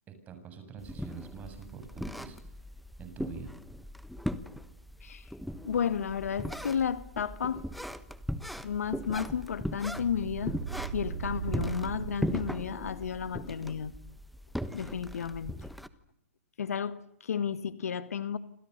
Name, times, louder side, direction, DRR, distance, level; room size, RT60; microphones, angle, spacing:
voice 1, 0.1-2.6 3.0-3.5, right 6 dB, 20° right, 8 dB, 7.6 m, -45 dB
sound 1, 0.8-15.9, equal, ahead, 1.3 m, -39 dB
voice 2, 5.6-7.6 8.6-10.6 10.9-13.9 14.7-15.5 16.6-18.4, left 7 dB, 85° left, 13 dB, 2.0 m, -32 dB
sound 2, 9.9-12.9, right 8 dB, 70° right, 3.7 m, -38 dB
28.5 x 27.0 x 6.9 m, 0.73 s
hypercardioid pair, 150°, 8 cm